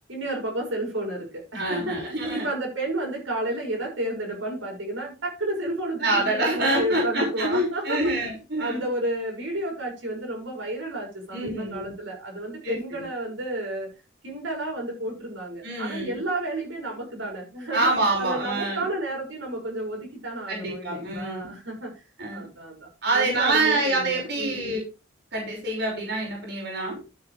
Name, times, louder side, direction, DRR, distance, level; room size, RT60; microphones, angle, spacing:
voice 1, 0.1-8.3 8.6-13.9 14.2-17.9 18.2-22.0 22.3-24.8, right 1 dB, 70° right, 0 dB, 6.9 m, -31 dB
voice 2, 1.5-2.5 5.6-8.8 11.3-11.9 12.6-13.0 15.6-16.2 17.7-18.8 20.5-21.5 22.2-22.5 23.0-24.8 25.3-27.0, right 2 dB, 55° right, -2 dB, 6.1 m, -26 dB
13.0 x 9.1 x 3.5 m, 0.30 s
head